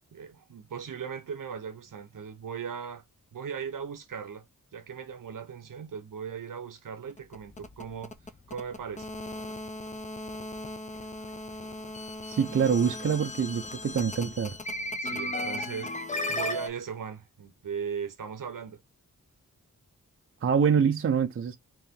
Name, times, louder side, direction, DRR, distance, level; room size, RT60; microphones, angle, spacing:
voice 1, 0.1-3.0 3.3-4.4 4.7-8.1 8.5-9.1 15.0-18.8, right 7 dB, 70° right, 0.8 m, -38 dB
sound 1, 7.1-16.7, left 1 dB, 20° left, 0.4 m, -36 dB
voice 2, 12.3-14.6 20.4-21.5, right 7 dB, 40° right, 0.4 m, -25 dB
3.0 x 2.7 x 3.5 m
wide cardioid pair, 120°, 33 cm